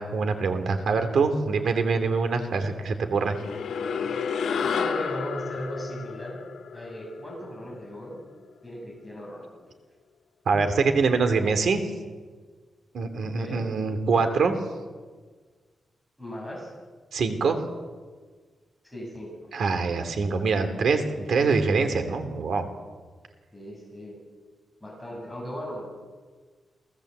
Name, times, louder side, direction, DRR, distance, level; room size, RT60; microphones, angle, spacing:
voice 1, 0.0-3.4 10.5-11.8 12.9-14.6 17.1-17.6 19.5-22.7, right 4 dB, 65° right, 7 dB, 2.8 m, -24 dB
sound 1, 3.2-7.9, left 6 dB, 85° left, 2.5 m, -31 dB
voice 2, 4.6-6.4 6.7-8.2 8.6-9.6 13.2-13.7 16.2-16.7 18.8-19.5 23.5-24.2 24.8-25.9, equal, ahead, -2 dB, 7.3 m, -37 dB
28.5 x 17.5 x 8.1 m, 1.5 s
wide cardioid pair, 175°, 0 cm